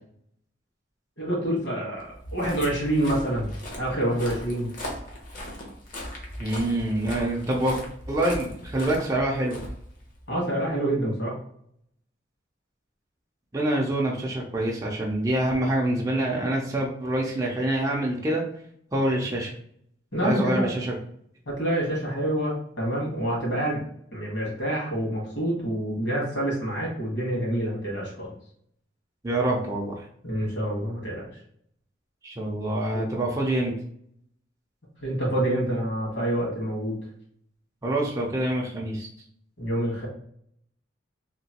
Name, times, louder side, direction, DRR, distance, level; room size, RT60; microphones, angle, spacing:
voice 1, 1.2-3.5 3.8-4.7 10.3-11.4 20.1-20.7 21.5-23.8 24.1-28.3 30.2-31.3 32.9-33.0 35.0-36.9 39.6-40.1, right 1 dB, 65° left, -3 dB, 1.4 m, -27 dB
Walk footsteps, 2.1-10.3, left 1 dB, 45° left, 0.7 m, -38 dB
voice 2, 6.4-7.8 8.1-9.6 13.5-18.4 18.9-19.5 20.2-21.0 29.2-30.1 32.2-33.7 37.8-39.1, right 1 dB, 20° right, -3 dB, 0.4 m, -26 dB
2.9 x 2.6 x 2.8 m, 0.67 s
head